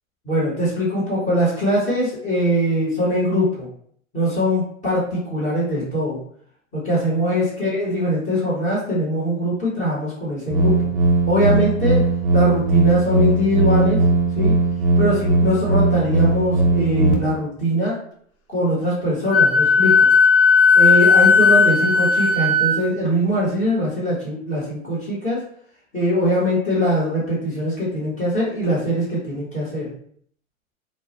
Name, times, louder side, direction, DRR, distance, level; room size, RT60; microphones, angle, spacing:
voice 1, 0.2-3.7 4.1-6.2 6.7-10.8 11.3-12.0 12.3-14.0 14.3-14.5 15.0-18.0 18.5-20.1 20.7-25.4 25.9-29.9, equal, 20° left, -7 dB, 0.9 m, -22 dB
sound 1, 10.5-17.1, right 3 dB, 30° right, 0.4 m, -18 dB
Wind instrument woodwind instrument, 19.3-22.8, left 4 dB, 75° left, 0.7 m, -15 dB
2.2 x 2.0 x 2.8 m, 0.62 s
hypercardioid pair, 120°, 41 cm